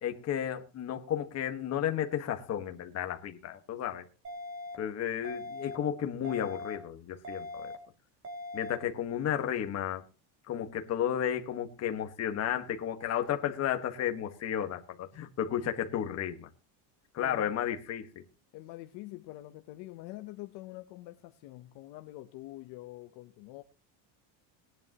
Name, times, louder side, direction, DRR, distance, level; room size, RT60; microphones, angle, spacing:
voice 1, 0.0-4.0 4.8-7.7 8.5-10.0 10.5-16.5 17.1-18.2, left 10 dB, 30° left, 1.6 m, -33 dB
sound 1, 4.2-4.7 5.2-5.7 6.2-6.7 7.2-7.7 8.2-8.7, left 1 dB, 25° right, 2.7 m, -41 dB
voice 2, 17.2-17.5 18.5-23.6, left 17 dB, 55° left, 1.1 m, -45 dB
20.0 x 10.5 x 3.0 m
cardioid pair, 165°, 49 cm